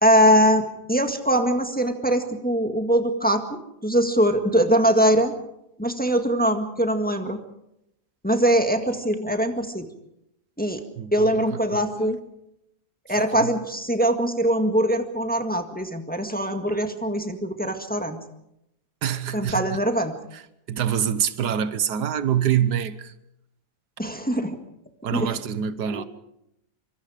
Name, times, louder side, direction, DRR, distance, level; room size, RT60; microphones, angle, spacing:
voice 1, 0.0-3.4 3.8-5.3 5.8-7.4 8.2-9.9 10.6-10.8 11.1-12.2 13.1-18.2 19.3-20.1 24.0-24.6 25.1-25.3 25.9-26.0, equal, 5° left, 1.7 m, -22 dB
voice 2, 11.0-12.1 13.3-13.5 19.0-19.8 20.3-20.4 20.7-23.1 25.0-26.0, right 9 dB, 85° right, 1.6 m, -26 dB
25.0 x 24.5 x 5.0 m
omnidirectional pair, 1.7 m